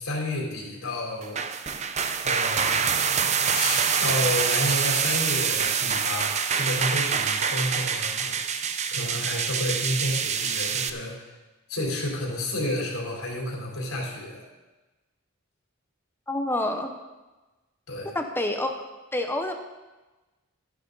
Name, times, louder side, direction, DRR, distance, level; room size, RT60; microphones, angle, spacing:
voice 1, 0.0-1.4 2.2-2.9 3.5-8.4 8.9-11.3 11.7-14.5 17.9-18.1, left 1 dB, 80° left, -1 dB, 3.7 m, -30 dB
sound 1, 1.2-10.9, right 6 dB, 35° right, 0.6 m, -25 dB
voice 2, 16.3-16.9 18.1-18.7 19.1-19.5, left 1 dB, 10° left, 4 dB, 0.8 m, -27 dB
13.0 x 11.0 x 4.0 m, 1.1 s
head